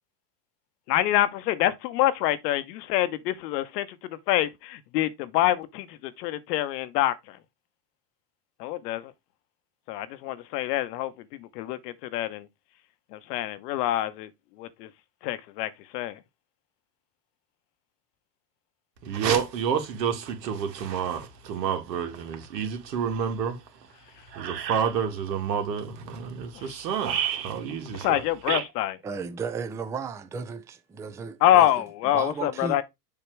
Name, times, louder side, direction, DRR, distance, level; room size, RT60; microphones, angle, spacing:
voice 1, 0.9-7.4 8.6-9.1 9.9-11.1 11.4-12.5 13.1-14.3 14.6-14.9 15.2-16.2 28.0-29.0 31.4-32.8, left 13 dB, 75° left, 1.0 m, -26 dB
voice 2, 19.0-23.6 24.3-28.2 28.5-28.6, right 7 dB, 90° right, 1.7 m, -29 dB
voice 3, 29.0-31.7 32.0-32.8, right 5 dB, 5° right, 0.3 m, -34 dB
7.2 x 3.0 x 4.5 m
supercardioid pair, 105°, 48 cm